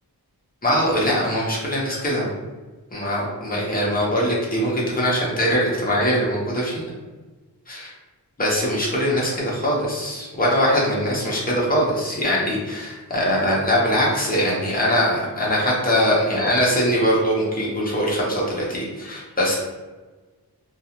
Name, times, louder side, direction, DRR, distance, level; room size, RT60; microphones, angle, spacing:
voice 1, 0.6-2.3 2.9-6.8 7.7-7.9 8.4-19.5, equal, 25° left, -5 dB, 0.8 m, -22 dB
2.4 x 2.4 x 2.9 m, 1.3 s
wide cardioid pair, 80°, 38 cm